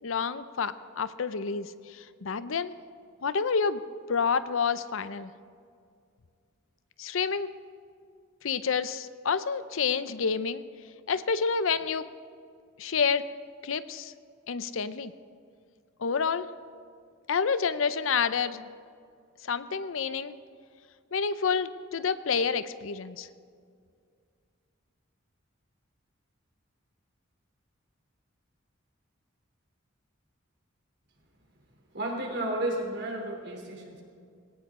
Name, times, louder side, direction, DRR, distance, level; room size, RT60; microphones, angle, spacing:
voice 1, 0.0-2.7 3.2-3.8 4.1-5.3 7.0-7.5 8.4-10.6 11.1-12.0 12.8-13.2 13.6-14.1 14.5-15.1 16.0-16.5 17.3-18.7 19.5-20.4 21.1-23.3, left 5 dB, 75° left, 14 dB, 0.6 m, -29 dB
voice 2, 31.9-34.0, right 1 dB, 55° right, 1 dB, 3.2 m, -32 dB
19.5 x 17.5 x 3.7 m, 2.2 s
head